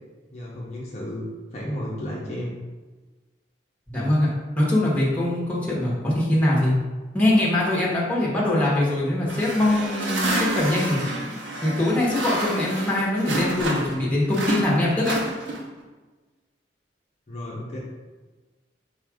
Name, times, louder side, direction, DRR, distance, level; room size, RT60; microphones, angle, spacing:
voice 1, 0.3-1.2 1.5-2.6 17.3-17.8, equal, 35° left, -5 dB, 0.6 m, -33 dB
voice 2, 3.9-4.3 4.6-6.7 7.1-11.0 11.6-15.1, left 1 dB, 10° left, -5 dB, 0.9 m, -22 dB
sound 1, 9.3-14.0 14.3-15.8, right 1 dB, 80° right, 0.7 m, -29 dB
4.1 x 2.4 x 4.7 m, 1.3 s
head